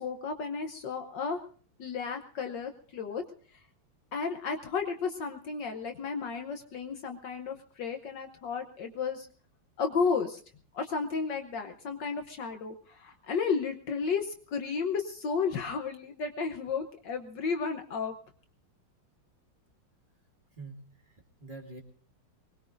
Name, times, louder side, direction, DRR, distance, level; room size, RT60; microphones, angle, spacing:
voice 1, 0.0-1.4 1.8-3.2 4.1-9.3 9.8-10.4 10.7-18.1, left 5 dB, 60° left, 5 dB, 1.5 m, -33 dB
voice 2, 20.5-21.8, right 3 dB, 25° right, 1 dB, 2.0 m, -46 dB
24.0 x 20.0 x 2.6 m, 0.43 s
omnidirectional pair, 2.4 m